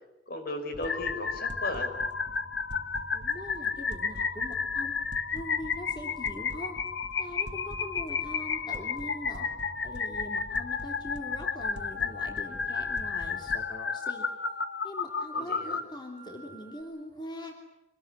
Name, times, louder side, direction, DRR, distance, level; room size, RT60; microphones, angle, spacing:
voice 1, 0.3-1.9 15.3-15.8, left 1 dB, 60° left, 6 dB, 5.2 m, -36 dB
sound 1, 0.7-13.7, equal, 70° right, 1.6 m, -46 dB
sound 2, 0.8-15.8, left 5 dB, 85° left, 1.6 m, -32 dB
voice 2, 3.1-4.9 5.3-6.7 7.2-9.5 9.8-14.2 14.8-17.5, left 1 dB, 25° left, 2 dB, 3.0 m, -42 dB
sound 3, 11.6-16.8, right 3 dB, 40° left, 7.4 m, -52 dB
25.5 x 21.0 x 9.8 m, 0.97 s
head